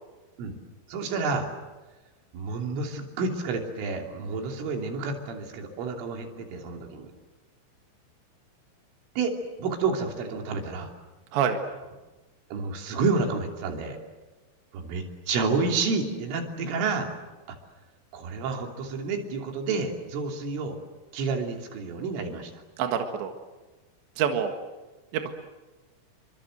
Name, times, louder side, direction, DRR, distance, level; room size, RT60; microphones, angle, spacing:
voice 1, 0.9-1.5 2.3-7.1 9.2-10.9 12.5-14.0 14.7-17.1 18.1-20.8 21.1-22.6, right 4 dB, 90° right, 3 dB, 5.6 m, -29 dB
voice 2, 22.8-23.3 24.2-24.5 25.1-25.3, right 8 dB, 70° right, 5 dB, 3.8 m, -26 dB
29.5 x 24.5 x 8.0 m, 1.2 s
omnidirectional pair, 5.5 m